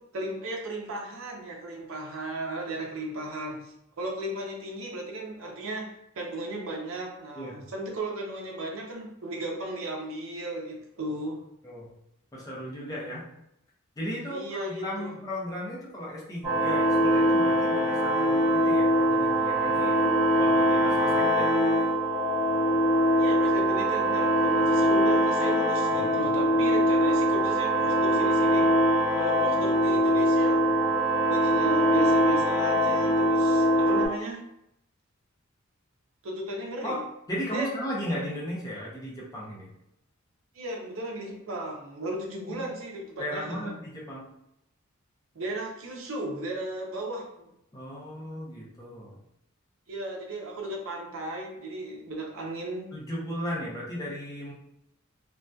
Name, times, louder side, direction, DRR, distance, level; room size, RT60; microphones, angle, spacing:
voice 1, 0.0-11.4 14.3-15.2 23.2-28.7 29.2-30.6 31.3-34.4 36.2-37.0 37.5-37.7 40.5-43.7 45.3-47.5 49.9-52.9, right 1 dB, 75° right, 0 dB, 0.5 m, -35 dB
voice 2, 12.3-13.3 14.0-20.0 20.4-21.7 25.9-26.2 36.8-37.0 37.3-39.7 42.5-42.7 43.2-44.2 47.7-49.2 52.9-54.5, equal, 15° left, -6 dB, 0.6 m, -36 dB
sound 1, 16.4-34.1, equal, 30° right, 1.1 m, -23 dB
2.6 x 2.2 x 2.2 m, 0.79 s
head